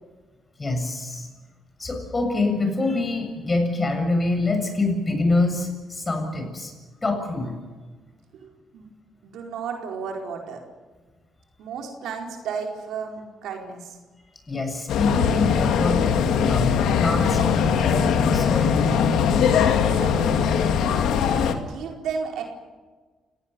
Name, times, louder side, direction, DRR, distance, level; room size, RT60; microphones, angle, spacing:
voice 1, 0.6-1.3 1.8-6.7 7.0-7.6 14.5-19.1, left 2 dB, 25° left, 5 dB, 7.1 m, -25 dB
voice 2, 8.3-8.9 9.2-10.6 11.6-14.0 19.9-20.5 21.6-22.4, right 6 dB, 80° right, 1 dB, 4.5 m, -33 dB
sound 1, 14.9-21.5, left 7 dB, 85° left, 2.1 m, -21 dB
29.0 x 18.5 x 7.1 m, 1.4 s
cardioid pair, 90°, 0 cm